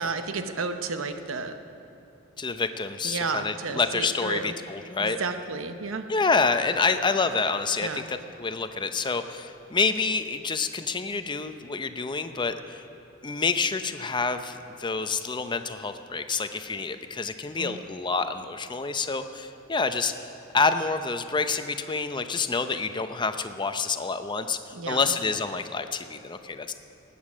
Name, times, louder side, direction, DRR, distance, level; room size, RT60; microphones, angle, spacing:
voice 1, 0.0-1.6 3.0-4.5 5.0-6.1 7.8-8.1 17.6-17.8 24.7-25.1, right 4 dB, 75° right, 8 dB, 0.8 m, -32 dB
voice 2, 2.4-5.2 6.1-12.8 13.2-20.1 20.5-26.8, left 4 dB, 25° left, 9 dB, 0.6 m, -28 dB
19.5 x 8.5 x 6.2 m, 3.0 s
head